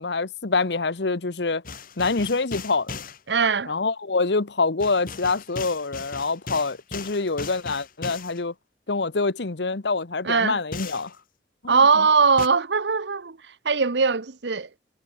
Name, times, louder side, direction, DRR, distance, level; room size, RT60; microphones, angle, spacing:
voice 1, 0.0-1.6 2.0-3.0 3.7-8.5 8.9-11.1 11.6-12.1, left 3 dB, 70° left, 1.1 m, -26 dB
sound 1, 1.6-3.2 4.8-8.4 10.7-11.1 12.4-12.5, left 4 dB, 50° left, 2.5 m, -37 dB
voice 2, 3.3-3.7 10.2-10.6 11.7-13.4 13.6-14.7, right 5 dB, 75° right, 1.0 m, -20 dB
head